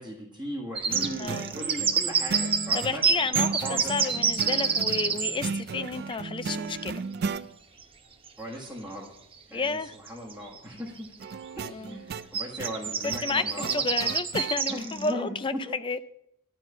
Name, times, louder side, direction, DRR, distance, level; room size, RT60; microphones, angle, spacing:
voice 1, 0.0-4.1 8.4-9.1 9.5-11.1 11.5-13.9 14.7-15.4 15.6-15.7, equal, 5° right, 1.6 m, -38 dB
sound 1, 0.8-5.4 7.8-7.9 8.3-8.4 9.7-9.8 10.1-10.6 11.0-11.2 12.3-15.1, right 6 dB, 25° right, 0.8 m, -27 dB
sound 2, 0.9-7.5 11.2-14.6, right 5 dB, 45° right, 0.4 m, -35 dB
voice 2, 1.2-1.5 2.7-7.0 9.5-9.9 11.7-12.0 13.0-16.0, left 4 dB, 20° left, 0.4 m, -31 dB
11.5 x 4.5 x 8.2 m
head